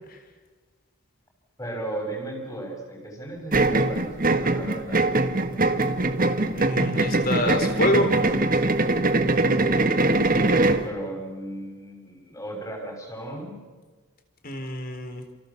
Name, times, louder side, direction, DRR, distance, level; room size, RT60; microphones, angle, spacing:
voice 1, 1.6-5.1 6.7-7.1 10.0-13.5, right 1 dB, 15° left, 2 dB, 6.2 m, -35 dB
sound 1, 3.5-10.9, right 2 dB, 40° right, 1.5 m, -22 dB
voice 2, 6.6-8.1 14.4-15.2, equal, 40° left, 7 dB, 3.7 m, -26 dB
29.5 x 28.5 x 7.2 m, 1.4 s
head